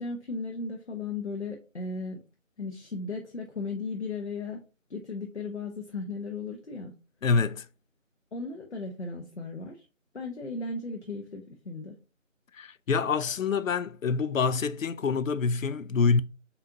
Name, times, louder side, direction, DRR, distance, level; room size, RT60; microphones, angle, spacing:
voice 1, 0.0-2.2 2.6-4.6 4.9-6.9 8.3-9.8 10.1-11.9, left 3 dB, 60° left, 0.9 m, -36 dB
voice 2, 7.2-7.7 12.5-16.2, left 5 dB, 75° left, 0.5 m, -26 dB
4.1 x 3.8 x 2.8 m
figure-of-eight pair, 175°, 40 cm